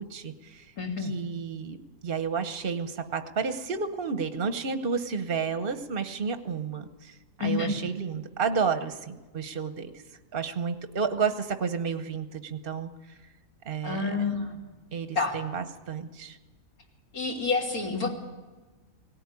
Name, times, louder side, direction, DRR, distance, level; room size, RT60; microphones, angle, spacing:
voice 1, 0.0-0.7 1.0-1.8 2.0-9.9 10.3-13.2 13.6-14.2 14.9-16.4, right 5 dB, 40° right, 9 dB, 1.0 m, -31 dB
voice 2, 0.8-1.1 7.4-7.7 13.8-14.6 15.2-15.3 17.1-18.1, left 4 dB, 65° left, 0 dB, 3.5 m, -28 dB
18.5 x 18.0 x 9.7 m, 1.2 s
omnidirectional pair, 1.7 m